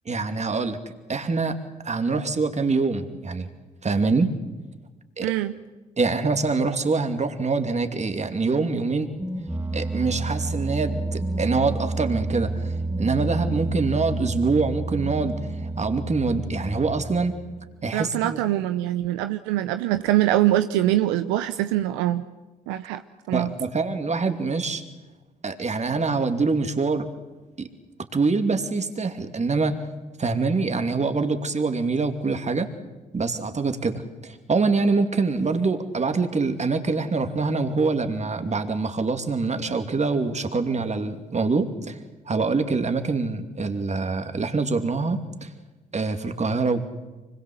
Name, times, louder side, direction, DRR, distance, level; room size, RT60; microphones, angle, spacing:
voice 1, 0.1-0.8 1.1-1.6 1.8-3.5 3.8-4.3 5.2-5.3 6.0-9.1 9.7-15.4 15.8-17.3 17.8-18.4 23.3-24.8 25.4-27.1 27.6-27.7 28.1-29.9 30.2-32.7 33.1-42.0 42.3-45.5 45.9-46.8, right 4 dB, 35° right, 7 dB, 2.7 m, -25 dB
voice 2, 5.2-5.5 17.9-22.2 22.7-23.5, right 14 dB, 85° right, 10 dB, 0.7 m, -23 dB
sound 1, 9.0-17.8, right 2 dB, 15° right, 2.4 m, -30 dB
25.0 x 21.0 x 8.0 m, 1.2 s
hypercardioid pair, 50°, 19 cm